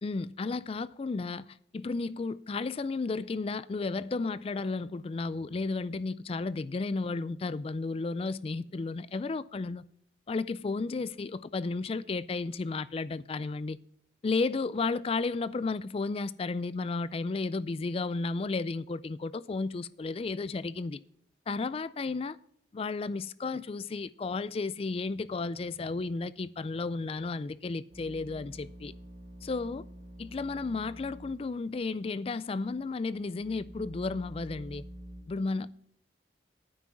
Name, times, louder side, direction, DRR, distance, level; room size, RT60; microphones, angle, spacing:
voice 1, 0.0-1.5 1.7-9.8 10.3-13.8 14.2-21.0 21.5-22.4 22.7-28.9 29.4-29.9 30.2-34.8 35.3-35.7, left 3 dB, 30° left, 0.3 m, -33 dB
sound 1, 27.9-31.4 31.7-31.8 32.5-35.2, equal, 70° right, 2.8 m, -48 dB
9.4 x 6.1 x 7.6 m
head